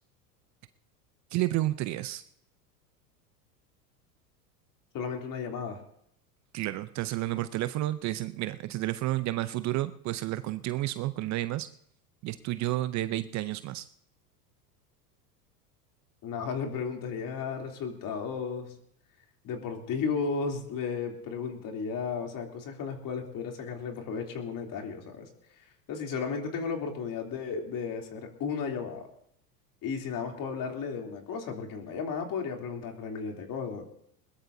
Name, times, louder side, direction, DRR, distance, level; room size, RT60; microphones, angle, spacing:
voice 1, 1.3-2.2 6.5-11.7 12.2-13.9, right 16 dB, 35° right, 13 dB, 0.6 m, -31 dB
voice 2, 4.9-5.8 16.2-18.7 19.4-25.3 25.9-29.1 29.8-33.8, left 5 dB, 40° left, 2 dB, 3.2 m, -34 dB
21.0 x 19.5 x 2.7 m, 0.72 s
hypercardioid pair, 90°, 49 cm